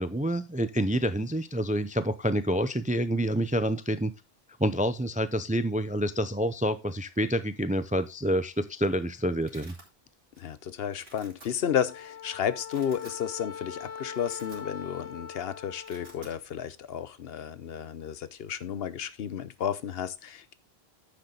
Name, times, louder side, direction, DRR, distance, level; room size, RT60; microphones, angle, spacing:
voice 1, 0.0-4.1 4.6-9.7, equal, 10° right, 0.4 m, -28 dB
Domestic sounds home sounds, 8.7-8.8 9.0-9.9 10.4-10.6 10.9-11.5 12.1-12.2 12.6-13.2 13.6-13.7 14.1-15.0 15.3-15.4 15.7-16.4, right 2 dB, 85° right, 2.8 m, -52 dB
voice 2, 10.4-20.5, left 8 dB, 75° left, 0.9 m, -32 dB
Wind instrument woodwind instrument, 11.8-16.3, left 7 dB, 45° left, 0.5 m, -42 dB
9.8 x 6.9 x 3.8 m
omnidirectional pair, 1.0 m